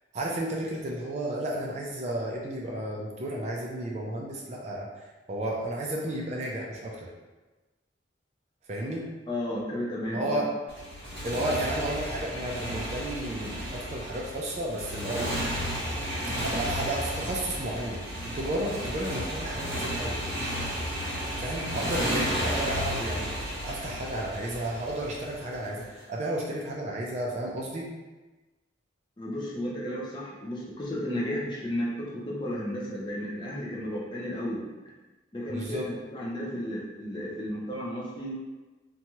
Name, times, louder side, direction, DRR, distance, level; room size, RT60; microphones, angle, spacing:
voice 1, 0.1-4.9 5.3-7.1 8.7-9.2 10.1-10.5 11.2-15.5 16.3-18.1 18.3-20.2 21.4-27.9 35.5-35.9, right 1 dB, 35° right, -2 dB, 0.3 m, -32 dB
voice 2, 9.3-10.5 29.2-34.7 35.3-38.3, left 1 dB, 25° left, -5 dB, 0.5 m, -33 dB
Motorcycle, 10.7-25.8, equal, 10° right, 1.4 m, -33 dB
2.7 x 2.3 x 2.9 m, 1.2 s
head